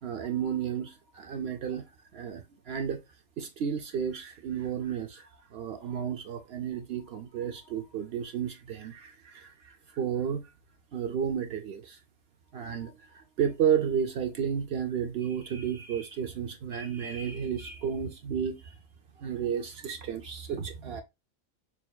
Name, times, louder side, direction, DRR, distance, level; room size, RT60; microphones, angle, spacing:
voice 1, 0.0-1.9 2.1-3.0 3.4-10.5 10.9-12.0 12.5-18.8 19.2-21.0, right 8 dB, 60° right, 0.7 m, -32 dB
6.3 x 2.8 x 2.3 m
omnidirectional pair, 1.4 m